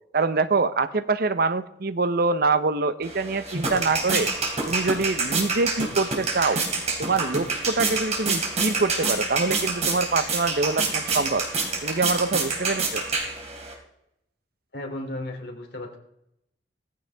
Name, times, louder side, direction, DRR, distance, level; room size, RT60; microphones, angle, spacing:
voice 1, 0.1-4.3 4.7-6.6 7.0-11.5 11.8-13.0, right 3 dB, 55° right, 13 dB, 0.8 m, -25 dB
sound 1, 3.0-13.7, right 3 dB, 40° right, 3.1 m, -27 dB
voice 2, 14.7-16.0, left 1 dB, 65° left, 2 dB, 2.9 m, -34 dB
17.0 x 15.0 x 3.5 m, 0.82 s
head